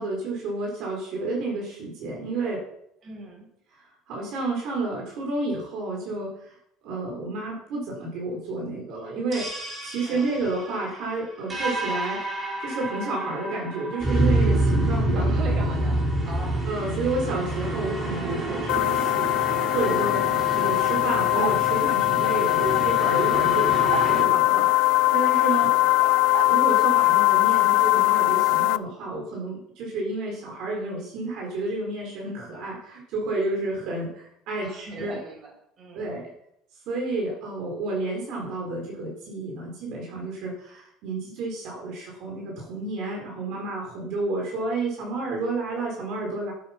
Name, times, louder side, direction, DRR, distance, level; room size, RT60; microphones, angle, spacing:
voice 1, 0.0-2.6 4.1-6.5 6.8-9.5 9.8-12.2 12.6-15.3 15.6-15.7 16.7-19.3 19.7-20.2 20.5-24.8 25.1-25.7 26.5-35.2 35.9-36.3 36.9-46.5, right 2 dB, 50° right, -1 dB, 4.3 m, -30 dB
voice 2, 3.0-3.5 10.0-10.4 15.1-16.7 25.6-26.3 34.6-36.1, right 3 dB, 30° right, 0 dB, 5.0 m, -40 dB
sound 1, 9.3-24.2, right 1 dB, 15° right, 4.1 m, -28 dB
sound 2, 18.7-28.8, left 19 dB, 70° left, 0.4 m, -21 dB
sound 3, 21.3-21.7 23.9-24.2 26.3-26.6, right 15 dB, 80° right, 0.7 m, -31 dB
13.5 x 9.1 x 5.9 m, 0.75 s
cardioid pair, 170°, 0 cm